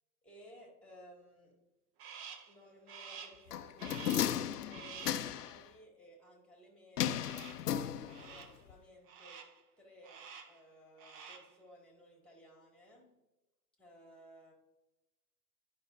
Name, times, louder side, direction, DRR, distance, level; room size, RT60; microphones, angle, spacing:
voice 1, 0.2-1.5 2.4-7.6 8.2-9.5 9.8-13.1 13.8-14.5, equal, ahead, 0 dB, 2.1 m, -58 dB
Crow, 2.0-2.6 2.9-3.5 3.8-4.4 4.7-5.3 7.2-7.7 8.1-8.6 9.1-9.6 10.0-10.6 10.9-11.6, right 6 dB, 30° right, 0.8 m, -50 dB
sound 1, 3.5-5.6 7.0-8.4 8.7-8.8, left 10 dB, 80° left, 0.6 m, -35 dB
12.0 x 5.4 x 2.6 m, 1.0 s
hypercardioid pair, 100°, 47 cm